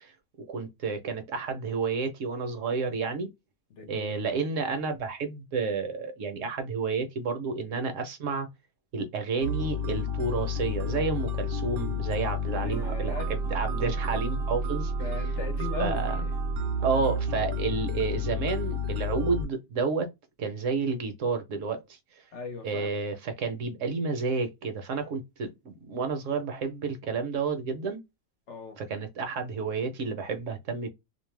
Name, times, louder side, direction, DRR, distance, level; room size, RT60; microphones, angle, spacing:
voice 1, 0.4-3.3 3.9-8.5 8.9-15.2 15.8-16.2 16.8-20.1 20.4-22.0 22.6-28.0 28.8-30.9, right 4 dB, 65° right, 1.0 m, -30 dB
voice 2, 3.7-4.4 12.5-13.3 15.0-16.3 22.3-23.0 28.5-28.8, left 4 dB, 60° left, 1.0 m, -38 dB
sound 1, 9.4-19.5, left 1 dB, 90° right, 1.0 m, -30 dB
2.6 x 2.1 x 3.1 m
omnidirectional pair, 1.5 m